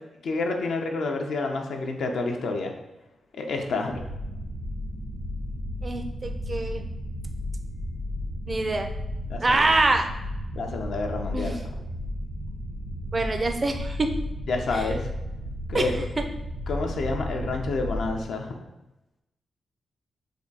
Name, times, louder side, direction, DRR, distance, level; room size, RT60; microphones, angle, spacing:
voice 1, 0.2-2.7 3.3-4.0 9.3-9.6 10.5-11.6 14.5-15.1 15.7-16.0 16.7-18.6, left 3 dB, 80° left, 2 dB, 0.5 m, -29 dB
sound 1, 3.9-18.2, left 1 dB, 75° right, 0.7 m, -33 dB
voice 2, 5.8-6.8 8.5-8.9 9.4-10.1 11.3-11.5 13.1-14.1 14.7-14.9 15.7-16.2, right 2 dB, 35° right, 6 dB, 0.4 m, -25 dB
3.4 x 2.2 x 3.9 m, 0.94 s
cardioid pair, 70°, 0 cm